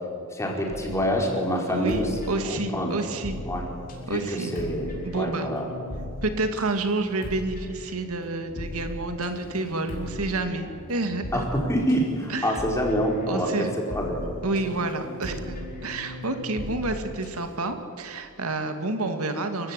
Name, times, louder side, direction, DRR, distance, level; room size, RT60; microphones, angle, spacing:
voice 1, 0.3-2.0 2.4-3.0 3.4-3.7 4.1-5.6 11.3-13.7 13.9-14.2, equal, 15° left, 0 dB, 4.5 m, -26 dB
sound 1, 0.7-17.6, left 1 dB, 40° left, 4.8 m, -39 dB
voice 2, 2.3-3.4 4.1-4.5 5.0-5.5 6.2-11.4 12.3-12.6 13.3-13.7 14.4-19.7, right 2 dB, 85° right, 7 dB, 2.2 m, -29 dB
26.5 x 16.0 x 9.8 m, 2.6 s
head